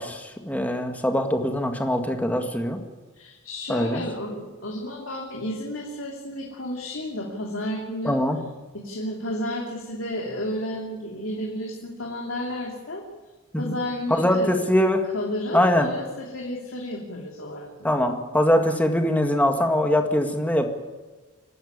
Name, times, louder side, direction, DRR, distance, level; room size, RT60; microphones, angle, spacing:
voice 1, 0.0-2.8 3.7-4.0 8.0-8.4 13.5-13.8 14.1-15.0 15.5-15.9 17.8-20.7, left 1 dB, 5° left, 4 dB, 1.9 m, -22 dB
voice 2, 3.1-8.2 8.7-13.0 13.6-14.6 15.1-17.7, left 1 dB, 65° left, -1 dB, 3.0 m, -32 dB
25.5 x 12.0 x 9.6 m, 1.3 s
head